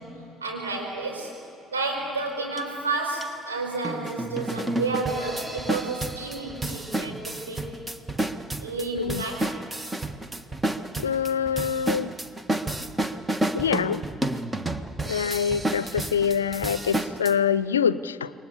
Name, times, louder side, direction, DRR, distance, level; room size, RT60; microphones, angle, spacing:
voice 1, 0.0-1.3 1.7-7.7 8.6-9.5, right 3 dB, 85° right, 0 dB, 4.8 m, -31 dB
sound 1, 2.6-2.7 3.2-3.3 3.8-17.3, right 1 dB, 20° right, 1.6 m, -30 dB
voice 2, 11.0-12.1 13.5-14.0 15.1-18.3, left 7 dB, 85° left, 17 dB, 0.5 m, -25 dB
28.0 x 23.0 x 8.4 m, 2.8 s
figure-of-eight pair, 50°, 0 cm